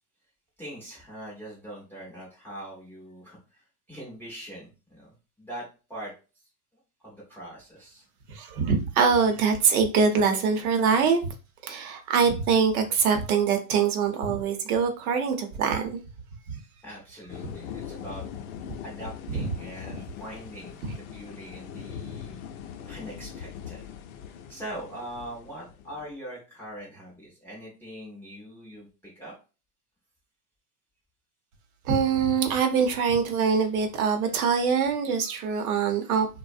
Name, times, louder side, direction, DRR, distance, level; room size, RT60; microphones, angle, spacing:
voice 1, 0.6-6.1 7.0-8.1 16.5-16.6 16.8-18.2 18.8-22.4 22.9-23.8 24.5-29.3, right 1 dB, 5° left, 0.4 m, -42 dB
voice 2, 8.3-11.3 11.6-16.0 16.5-16.6 19.4-19.5 20.8-20.9 31.8-36.3, right 6 dB, 60° right, 0.7 m, -24 dB
sound 1, 17.3-26.1, left 8 dB, 60° left, 0.5 m, -41 dB
2.5 x 2.0 x 2.4 m
hypercardioid pair, 115°, 48 cm